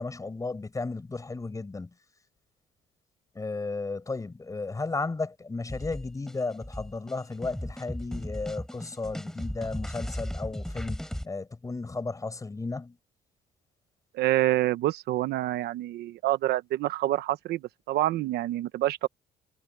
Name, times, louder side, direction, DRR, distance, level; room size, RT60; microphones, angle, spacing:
voice 1, 0.0-1.9 3.3-13.0, left 3 dB, 20° left, 6.8 m, -34 dB
sound 1, 5.7-11.3, equal, 5° left, 7.9 m, -36 dB
voice 2, 14.1-19.1, right 15 dB, 75° right, 1.1 m, -27 dB
cardioid pair, 110°, 17 cm